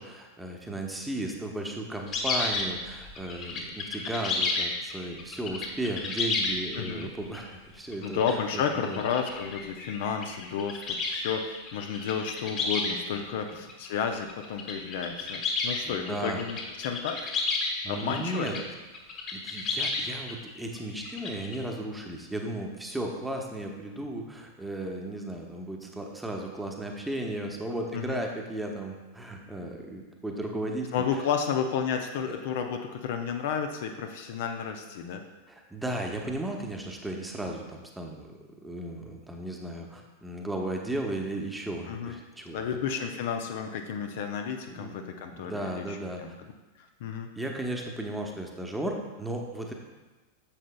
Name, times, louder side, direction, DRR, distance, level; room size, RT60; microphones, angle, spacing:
voice 1, 0.0-9.0 13.5-13.6 15.9-16.4 17.8-18.6 19.3-31.2 32.3-32.4 35.5-43.0 44.7-44.9 45.3-46.2 47.3-49.7, right 1 dB, 5° right, 1 dB, 1.1 m, -35 dB
sound 1, 2.1-7.4 7.9-13.2 13.5-18.6 18.9-21.6, left 3 dB, 35° left, 1.4 m, -32 dB
voice 2, 6.8-7.1 8.0-17.2 17.9-18.5 27.9-28.2 30.9-35.2 41.9-42.1 42.5-46.0 47.0-47.3, left 7 dB, 55° left, 4 dB, 0.6 m, -32 dB
9.8 x 7.3 x 2.3 m, 1.2 s
figure-of-eight pair, 90°, 0 cm